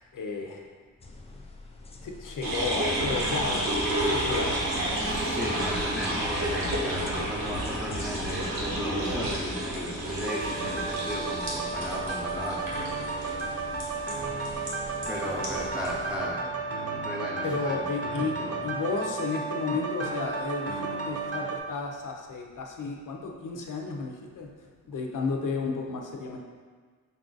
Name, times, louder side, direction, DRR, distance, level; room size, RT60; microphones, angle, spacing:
voice 1, 0.1-0.6 2.0-4.6 17.4-18.3 18.6-24.5 24.9-26.4, left 4 dB, 65° left, 1 dB, 0.6 m, -32 dB
sound 1, 1.0-8.8, left 2 dB, 20° left, 0.3 m, -46 dB
sound 2, 2.4-16.2, right 1 dB, 85° right, 1.0 m, -31 dB
voice 2, 5.1-12.7 13.1-13.2 14.2-14.3 15.1-18.6, equal, 5° right, -4 dB, 0.7 m, -36 dB
sound 3, 10.2-21.6, right 4 dB, 45° right, 0.4 m, -33 dB
5.3 x 2.5 x 3.9 m, 1.5 s
wide cardioid pair, 170°, 33 cm